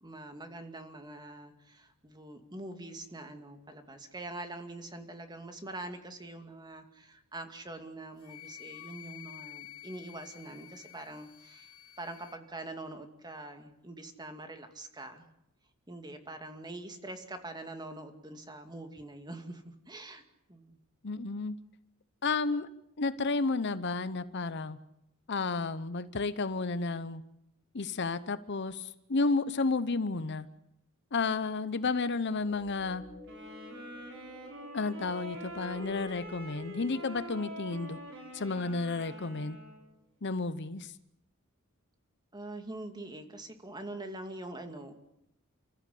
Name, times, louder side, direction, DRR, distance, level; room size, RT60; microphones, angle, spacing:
voice 1, 0.0-11.7 12.0-15.3 15.9-20.2 20.5-20.8 42.3-44.9, right 2 dB, 20° right, 6 dB, 2.4 m, -44 dB
Wind instrument woodwind instrument, 8.2-12.4, left 12 dB, 70° left, 1.9 m, -50 dB
voice 2, 21.0-21.5 22.2-22.7 23.0-24.8 25.3-27.2 27.7-30.5 31.1-33.0 34.7-38.0 38.3-39.6 40.2-40.9, left 3 dB, 55° left, 14 dB, 0.9 m, -32 dB
sound 1, 32.3-39.7, left 3 dB, 35° right, 7.7 m, -53 dB
sound 2, 33.2-39.8, equal, 60° right, 6.2 m, -45 dB
29.5 x 14.5 x 8.6 m, 0.82 s
head